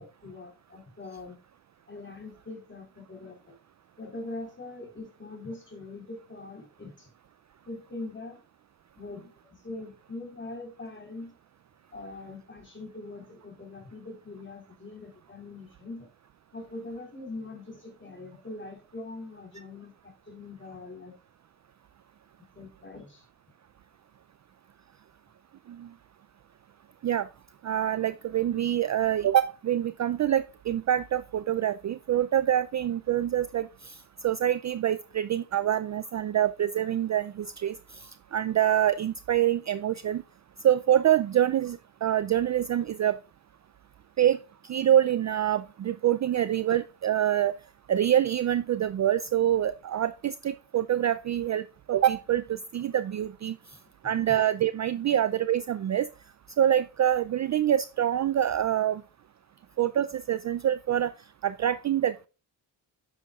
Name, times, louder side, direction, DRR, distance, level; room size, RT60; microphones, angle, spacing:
voice 1, 0.0-1.4 1.9-3.5 4.0-7.1 7.7-8.4 9.0-11.3 11.9-16.1 16.5-21.1 22.5-23.3 54.0-54.4 55.1-55.2, left 2 dB, 25° left, 4.1 m, -42 dB
voice 2, 27.6-34.0 34.2-40.2 40.6-43.2 44.2-47.5 47.9-53.6 54.0-56.1 56.6-59.0 59.8-61.1 61.4-62.3, right 11 dB, 40° right, 0.4 m, -26 dB
9.7 x 7.3 x 2.4 m
cardioid pair, 95°, 47 cm